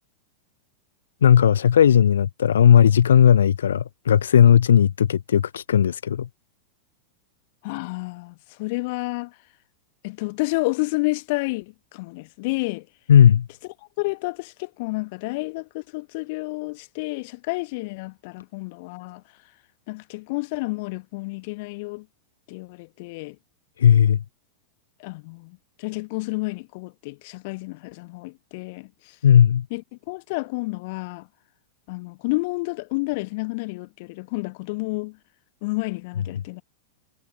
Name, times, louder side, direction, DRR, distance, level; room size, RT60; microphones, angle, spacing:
voice 1, 1.2-6.3 13.1-13.5 23.8-24.2 29.2-29.7, left 9 dB, 65° left, 0.7 m, -16 dB
voice 2, 7.6-9.3 10.0-12.9 14.0-19.2 19.9-22.0 22.5-23.3 25.0-28.9 29.7-29.8 30.1-31.3 31.9-35.2 35.6-36.6, left 25 dB, 50° left, 1.3 m, -30 dB
figure-of-eight pair, 90°, 0 cm